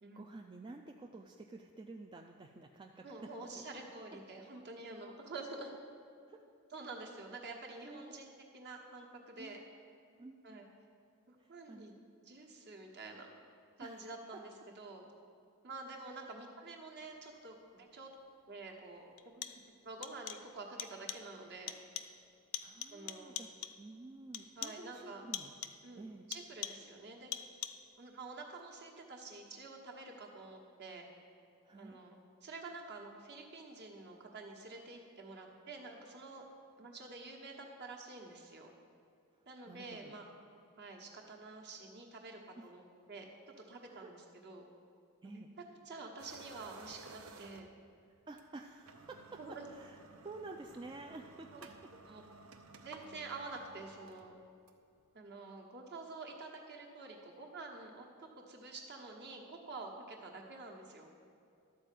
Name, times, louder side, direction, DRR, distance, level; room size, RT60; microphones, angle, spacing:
voice 1, 0.1-3.0 3.5-3.6 6.3-6.4 7.8-8.3 9.4-9.8 10.2-10.6 11.4-11.8 13.8-14.1 22.6-23.5 23.8-25.5 26.0-26.2 31.6-32.0 39.7-40.1 42.6-42.7 43.9-44.1 45.2-45.5 48.3-49.2 49.7-50.0 50.2-51.5, right 2 dB, 20° right, 2 dB, 0.3 m, -50 dB
voice 2, 3.0-5.7 6.7-9.6 10.4-10.7 11.3-11.9 12.2-13.3 13.8-15.0 15.6-18.1 18.5-19.5 19.8-21.8 22.9-23.4 24.5-25.2 25.8-27.3 28.0-31.0 31.7-36.4 36.8-38.7 39.5-40.3 40.8-42.8 43.1-43.3 43.7-44.6 45.2-45.4 45.8-47.7 49.4-49.7 51.5-51.6 52.0-52.2 52.8-54.4 55.1-61.1, right 3 dB, 50° right, 1 dB, 1.3 m, -48 dB
sound 1, 18.1-18.2 19.2-19.8 20.0-20.5 20.8-21.4 21.7-22.3 22.5-23.9 24.3-24.9 25.3-25.9 26.3-27.0 27.3-27.9, left 10 dB, 60° left, 0.5 m, -44 dB
sound 2, 46.2-47.9 48.4-48.5 48.8-55.0, right 3 dB, 65° right, 0.7 m, -55 dB
12.5 x 4.5 x 7.6 m, 2.6 s
head